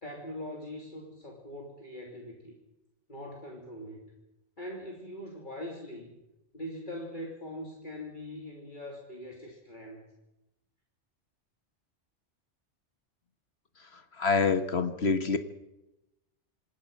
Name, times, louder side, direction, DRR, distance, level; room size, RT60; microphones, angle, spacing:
voice 1, 0.0-2.5 3.1-4.0 4.6-6.1 6.5-10.1, left 1 dB, 40° left, -1 dB, 3.3 m, -42 dB
voice 2, 13.9-15.4, left 4 dB, 60° left, 9 dB, 1.8 m, -27 dB
27.5 x 20.0 x 5.6 m, 0.94 s
omnidirectional pair, 1.2 m